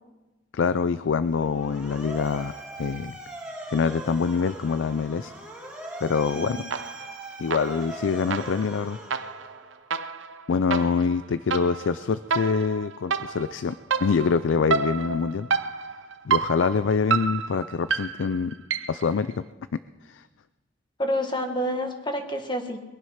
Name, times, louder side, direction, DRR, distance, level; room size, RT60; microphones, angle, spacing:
voice 1, 0.5-2.5 2.8-3.2 3.7-5.3 6.0-6.6 7.4-9.0 10.5-13.8 14.0-15.5 16.2-18.5 18.9-19.4 20.0-20.2, left 5 dB, 90° left, 14 dB, 0.4 m, -25 dB
Motor vehicle (road) / Siren, 1.2-9.8, right 1 dB, 10° right, 2.6 m, -40 dB
sound 1, 6.7-7.2 7.5-19.1, right 5 dB, 85° right, 0.8 m, -30 dB
voice 2, 21.0-22.8, equal, 25° left, 5 dB, 1.6 m, -28 dB
22.0 x 11.0 x 5.8 m, 1.1 s
head